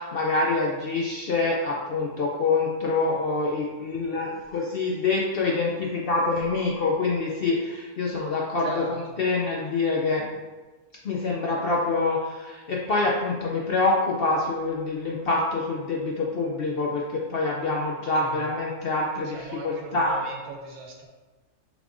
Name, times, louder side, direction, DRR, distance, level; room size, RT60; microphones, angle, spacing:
voice 1, 0.0-10.2 11.0-20.2, left 3 dB, 65° left, -2 dB, 0.6 m, -26 dB
voice 2, 8.6-9.2 18.2-18.4 19.3-21.1, right 2 dB, 80° right, 1 dB, 1.3 m, -39 dB
5.9 x 3.5 x 2.5 m, 1.2 s
omnidirectional pair, 1.5 m